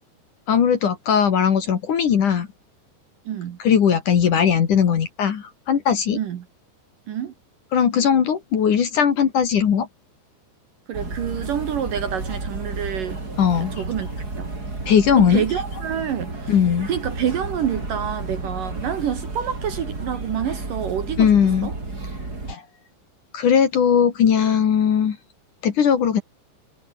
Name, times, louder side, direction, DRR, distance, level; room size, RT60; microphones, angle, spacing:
voice 1, 0.5-2.5 3.6-6.2 7.7-9.9 13.4-13.7 14.9-15.4 16.5-16.9 21.2-21.7 22.5-22.6 23.3-25.2 25.6-26.2, left 7 dB, 50° left, 3.2 m, -19 dB
voice 2, 3.3-3.6 6.2-6.4 7.1-7.3 10.9-13.2 13.6-14.1 14.4-14.5 15.2-16.5 16.9-21.7, right 9 dB, 60° right, 2.7 m, -27 dB
sound 1, 10.9-22.5, right 2 dB, 20° right, 5.3 m, -32 dB
omnidirectional pair, 5.2 m